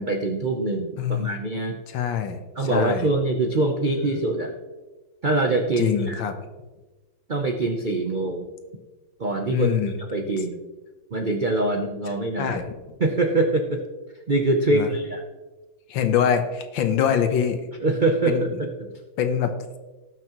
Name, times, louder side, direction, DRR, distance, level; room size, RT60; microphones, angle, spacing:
voice 1, 0.0-1.8 2.6-4.5 5.2-6.2 7.3-8.5 9.2-9.7 10.1-10.6 11.1-12.6 13.0-13.8 14.3-15.2 17.8-18.9, right 2 dB, 65° right, 3 dB, 0.5 m, -24 dB
voice 2, 1.0-1.4 1.9-3.1 5.8-6.3 9.5-10.0 12.4-12.6 14.7-14.9 15.9-17.6 18.3-18.6 19.2-19.5, left 8 dB, 85° left, 8 dB, 1.7 m, -24 dB
18.5 x 6.2 x 3.0 m, 1.2 s
omnidirectional pair, 2.1 m